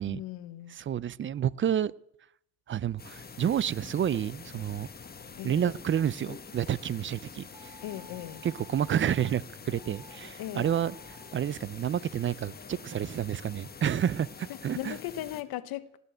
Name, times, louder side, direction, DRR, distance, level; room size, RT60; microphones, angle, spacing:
voice 1, 0.1-0.8 5.4-5.8 7.8-8.5 10.4-10.7 14.7-16.0, left 13 dB, 75° left, 1.0 m, -38 dB
voice 2, 0.7-1.9 2.7-4.9 5.4-7.7 8.4-15.0, right 9 dB, 35° right, 0.4 m, -30 dB
sound 1, 3.0-15.4, left 5 dB, 25° left, 1.1 m, -46 dB
sound 2, 7.5-9.3 9.8-10.2 10.5-11.4, right 2 dB, 10° right, 1.7 m, -54 dB
17.5 x 6.9 x 9.0 m
cardioid pair, 85°, 37 cm